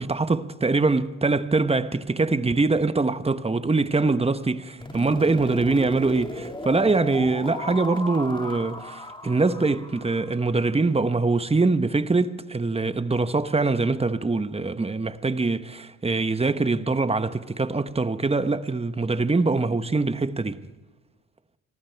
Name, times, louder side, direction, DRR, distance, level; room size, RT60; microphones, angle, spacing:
voice 1, 0.0-20.6, right 3 dB, 15° right, 1.0 m, -23 dB
sound 1, 4.8-10.7, left 1 dB, 15° left, 2.2 m, -36 dB
25.0 x 14.0 x 3.5 m
supercardioid pair, 55°, 36 cm